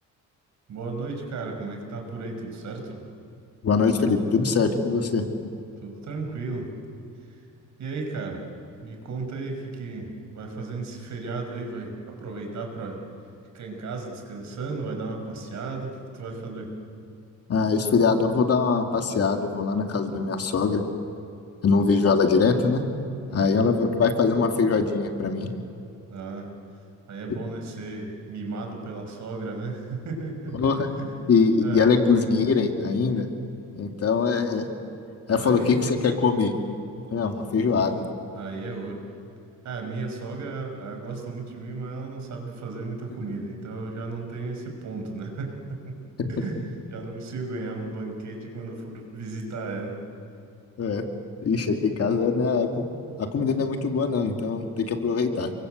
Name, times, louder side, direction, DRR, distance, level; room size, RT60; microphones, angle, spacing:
voice 1, 0.7-3.0 5.8-6.7 7.2-7.4 7.8-8.4 8.8-13.0 13.5-16.7 23.3-23.7 26.1-26.5 27.1-30.6 31.0-31.1 31.6-31.9 35.3-35.7 38.3-39.0 39.6-46.0 46.3-50.0, right 3 dB, 55° right, 3 dB, 6.1 m, -34 dB
voice 2, 3.6-5.2 17.5-20.8 21.6-22.8 23.3-25.5 30.5-30.9 31.3-33.3 33.7-34.7 35.3-36.5 37.1-38.0 46.2-46.3 50.8-51.0 51.4-52.8 53.2-55.5, left 5 dB, 45° left, 4 dB, 2.6 m, -22 dB
30.0 x 23.0 x 8.1 m, 2.7 s
cardioid pair, 130°, 33 cm